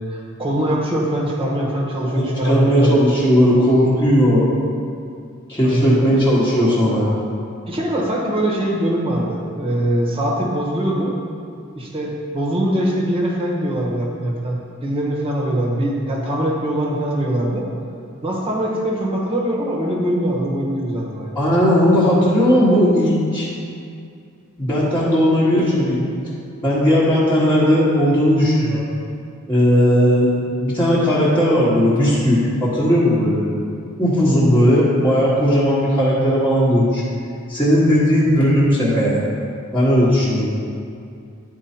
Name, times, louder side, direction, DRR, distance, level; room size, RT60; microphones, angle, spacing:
voice 1, 0.0-3.0 5.6-6.0 7.7-11.1 11.7-17.7 18.2-21.3, right 1 dB, 25° right, -3 dB, 1.2 m, -22 dB
voice 2, 2.0-4.5 5.5-7.1 21.3-23.5 24.6-26.1 26.6-28.8 29.5-30.3 30.6-33.5 34.0-37.0 37.5-39.2 39.7-40.5, equal, 10° left, -11 dB, 1.3 m, -16 dB
11.0 x 4.6 x 4.4 m, 2.4 s
head